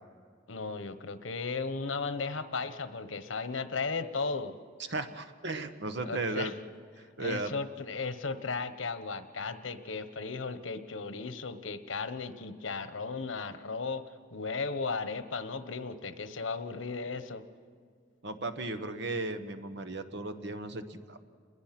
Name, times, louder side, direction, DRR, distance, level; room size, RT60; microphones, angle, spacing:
voice 1, 0.5-4.6 6.0-6.5 7.2-14.0 14.3-17.4, left 4 dB, 85° left, 11 dB, 1.1 m, -35 dB
voice 2, 4.9-6.5 7.2-7.5 18.2-21.2, right 2 dB, 65° right, 9 dB, 1.3 m, -35 dB
27.5 x 21.0 x 6.0 m, 2.1 s
head